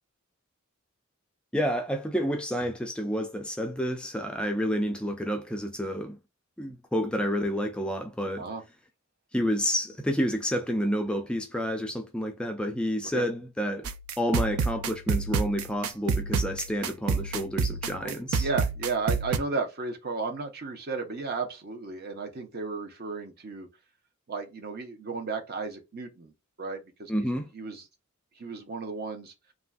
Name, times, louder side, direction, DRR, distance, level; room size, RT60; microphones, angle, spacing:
voice 1, 1.5-6.2 6.6-8.5 9.3-13.9 14.2-18.5 27.1-27.5, equal, 5° left, 0.3 m, -29 dB
sound 1, 13.8-19.4, right 5 dB, 85° right, 0.4 m, -29 dB
voice 2, 18.0-23.7 24.3-26.3 26.6-27.8 28.4-29.3, right 4 dB, 50° right, 0.7 m, -34 dB
3.2 x 2.5 x 2.3 m
head